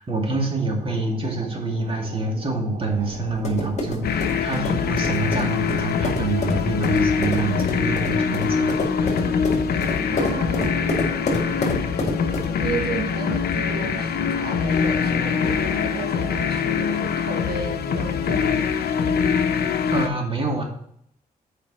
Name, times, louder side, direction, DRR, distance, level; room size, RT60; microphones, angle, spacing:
voice 1, 0.0-9.4 19.9-20.6, right 2 dB, 35° right, 0 dB, 2.3 m, -27 dB
sound 1, 0.6-17.1, right 4 dB, 60° right, 1.8 m, -40 dB
sound 2, 2.9-12.7, left 2 dB, 45° left, 2.2 m, -29 dB
sound 3, 4.0-20.1, left 6 dB, 80° left, 0.8 m, -24 dB
voice 2, 10.1-11.3 12.6-18.7, right 4 dB, 80° right, 3 dB, 1.2 m, -33 dB
7.8 x 5.0 x 4.2 m, 0.71 s
cardioid pair, 95°, 16 cm